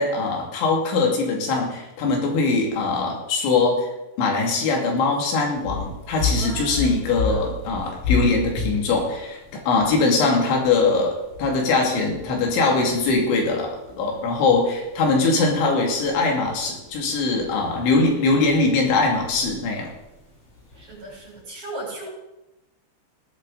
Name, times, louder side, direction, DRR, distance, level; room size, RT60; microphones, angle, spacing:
voice 1, 0.0-3.9 4.2-19.9, left 3 dB, 85° left, 0 dB, 4.9 m, -22 dB
sound 1, 5.5-21.4, left 4 dB, 35° left, 4.0 m, -33 dB
voice 2, 6.2-7.4 14.1-14.4 20.7-22.1, right 1 dB, 40° right, -4 dB, 8.2 m, -38 dB
18.0 x 12.0 x 4.0 m, 0.96 s
omnidirectional pair, 5.2 m